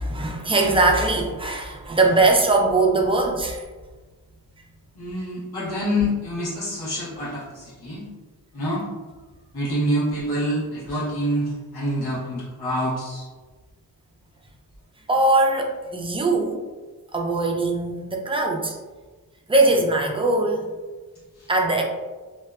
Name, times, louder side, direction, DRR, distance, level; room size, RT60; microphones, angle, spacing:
voice 1, 0.0-3.6 15.1-16.6 17.1-18.8 19.5-20.8 21.5-21.8, right 2 dB, 15° right, 0 dB, 0.3 m, -21 dB
voice 2, 5.0-8.1 8.5-8.9 9.5-13.3, equal, 85° left, -8 dB, 1.1 m, -26 dB
2.6 x 2.1 x 2.3 m, 1.3 s
wide cardioid pair, 85°, 37 cm